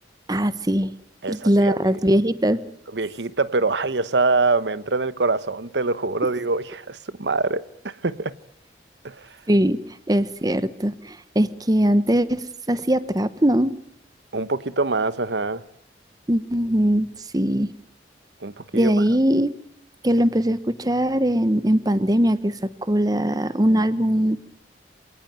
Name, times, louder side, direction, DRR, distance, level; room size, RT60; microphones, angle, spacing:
voice 1, 0.3-0.9 1.3-2.6 9.5-9.8 10.1-13.7 16.3-17.1 17.3-17.7 18.7-19.5 20.0-24.4, equal, 20° right, 1.0 m, -21 dB
voice 2, 1.2-2.0 2.9-8.3 9.0-9.1 14.3-15.6 18.4-19.0, right 3 dB, 80° right, 1.1 m, -24 dB
27.0 x 19.0 x 9.0 m
head